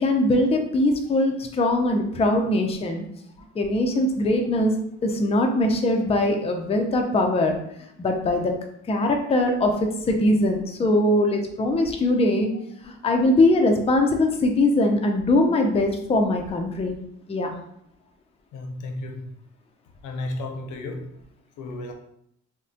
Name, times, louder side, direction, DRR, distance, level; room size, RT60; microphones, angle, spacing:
voice 1, 0.0-3.0 3.6-4.7 5.0-7.5 8.0-8.5 8.9-12.5 12.8-16.9 17.3-17.5, left 1 dB, 20° left, 3 dB, 0.4 m, -21 dB
voice 2, 18.5-19.3 20.0-21.1 21.6-21.9, left 2 dB, 80° left, 4 dB, 0.6 m, -33 dB
3.4 x 2.1 x 2.6 m, 0.72 s
cardioid pair, 90°, 30 cm